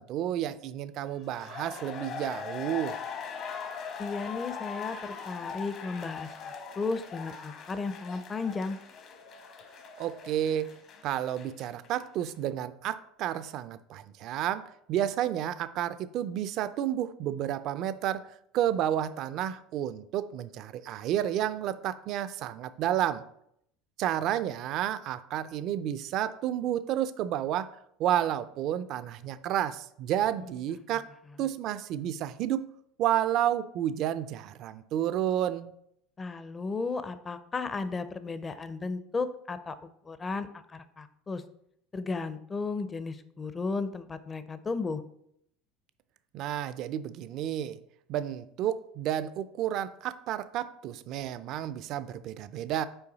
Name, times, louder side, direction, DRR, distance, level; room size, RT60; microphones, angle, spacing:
voice 1, 0.0-3.0 10.0-10.8 11.0-18.3 18.5-23.2 24.0-27.7 28.0-31.1 31.4-32.7 33.0-35.7 46.3-47.8 48.1-52.8, right 11 dB, 55° right, 14 dB, 0.4 m, -31 dB
sound 1, 1.1-12.0 12.3-12.4, left 6 dB, 50° left, 1.1 m, -41 dB
voice 2, 4.0-8.8 36.2-41.4 41.9-45.0, left 4 dB, 25° left, 12 dB, 0.5 m, -34 dB
5.6 x 4.7 x 4.0 m, 0.73 s
supercardioid pair, 100°, 0 cm